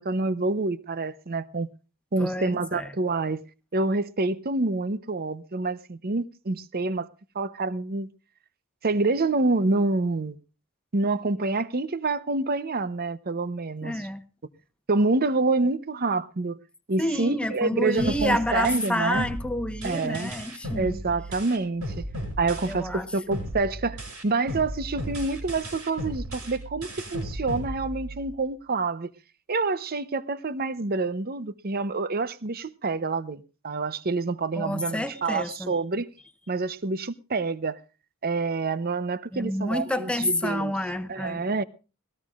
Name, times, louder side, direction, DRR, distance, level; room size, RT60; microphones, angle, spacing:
voice 1, 0.0-1.7 2.1-3.4 3.7-7.1 7.3-8.1 8.8-10.4 10.9-14.0 14.9-16.6 16.9-19.2 19.8-20.3 20.8-22.1 22.4-24.0 24.2-29.1 29.5-36.1 36.5-37.8 38.2-40.7 41.1-41.6, right 3 dB, 45° right, 0.7 m, -27 dB
voice 2, 2.2-2.9 13.8-14.2 17.0-21.0 22.7-23.1 34.6-35.7 39.3-41.6, left 1 dB, 5° left, 1.0 m, -29 dB
sound 1, 18.0-23.0 23.3-28.3, equal, 75° right, 5.8 m, -35 dB
21.0 x 17.5 x 2.4 m
head